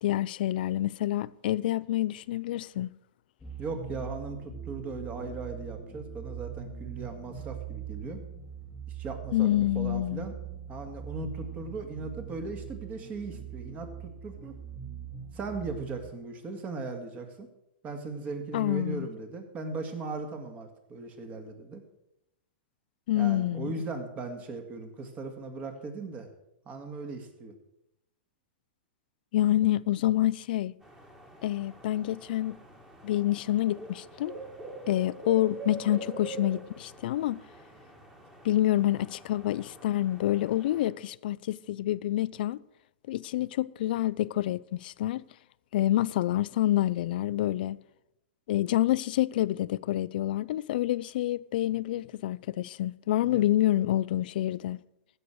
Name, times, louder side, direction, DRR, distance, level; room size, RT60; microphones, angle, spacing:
voice 1, 0.0-2.9 9.3-10.3 18.5-19.1 23.1-23.7 29.3-30.7 31.4-32.6 33.0-34.3 34.9-37.4 38.4-42.6 43.1-45.2 45.7-47.8 48.5-54.8, left 14 dB, 65° left, 0.4 m, -27 dB
sound 1, 3.4-16.1, right 8 dB, 10° left, 1.8 m, -42 dB
voice 2, 3.6-8.2 8.9-10.3 10.7-14.5 15.3-17.5 17.8-21.8 23.1-26.3 26.7-27.5 53.2-53.4, right 3 dB, 25° right, 2.1 m, -38 dB
sound 2, 30.8-40.9, right 2 dB, 10° right, 2.1 m, -45 dB
15.5 x 6.8 x 6.4 m
hypercardioid pair, 135°, 6 cm